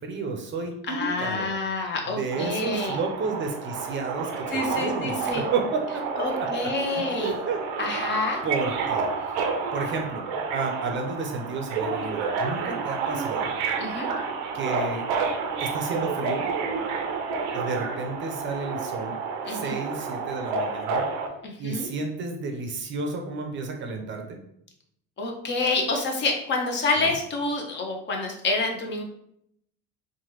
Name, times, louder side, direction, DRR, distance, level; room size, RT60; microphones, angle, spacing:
voice 1, 0.0-1.5 2.2-6.1 6.4-7.6 8.4-9.0 9.7-13.5 14.5-15.1 15.6-16.5 17.5-19.2 19.5-21.0 21.6-24.4 27.0-27.1, right 4 dB, 35° right, 3 dB, 0.5 m, -31 dB
voice 2, 0.9-3.0 4.5-5.4 6.2-7.3 7.8-8.4 13.8-14.1 19.4-19.8 21.4-21.9 25.2-29.0, left 3 dB, 35° left, 2 dB, 0.6 m, -28 dB
Subway metro underground, 2.3-21.3, right 5 dB, 90° right, 0.6 m, -30 dB
3.1 x 2.2 x 3.0 m, 0.72 s
cardioid pair, 115°, 31 cm